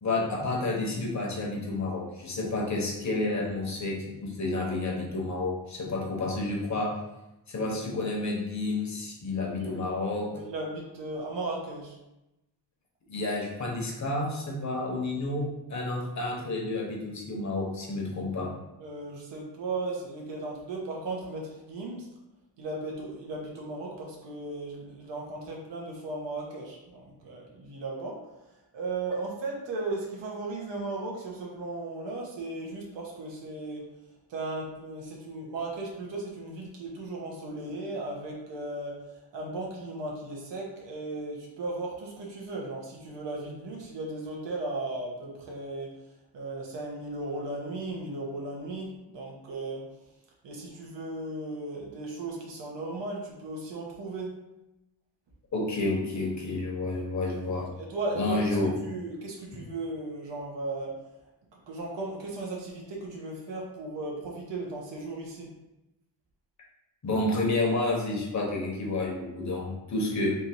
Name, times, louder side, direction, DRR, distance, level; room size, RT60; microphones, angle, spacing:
voice 1, 0.0-6.9 7.5-10.3 13.1-15.4 15.7-18.5 55.5-57.7 58.1-58.7 67.0-70.3, left 2 dB, 40° left, -1 dB, 1.0 m, -30 dB
voice 2, 9.6-9.9 10.3-11.9 18.8-22.1 22.6-28.2 28.7-33.9 34.3-39.0 39.3-45.9 46.3-49.9 50.4-54.4 57.5-58.6 58.8-60.9 61.7-65.5, right 2 dB, 85° right, -2 dB, 1.2 m, -36 dB
3.5 x 2.7 x 4.4 m, 0.94 s
wide cardioid pair, 140°, 42 cm